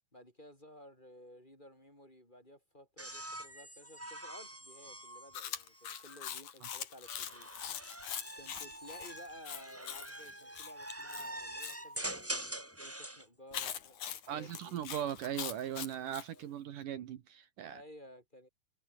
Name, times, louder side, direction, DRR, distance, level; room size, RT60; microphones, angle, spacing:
voice 1, 0.1-7.5 8.4-14.8 16.3-16.5 17.6-18.5, equal, 10° left, 8.1 m, -55 dB
sound 1, 3.0-6.2 7.0-13.3 14.7-15.2, right 1 dB, 5° right, 1.3 m, -45 dB
Chewing mastication, 5.3-11.8 13.5-16.3, left 9 dB, 60° left, 3.4 m, -43 dB
voice 2, 14.3-17.8, right 10 dB, 70° right, 3.0 m, -39 dB
omnidirectional pair, 4.0 m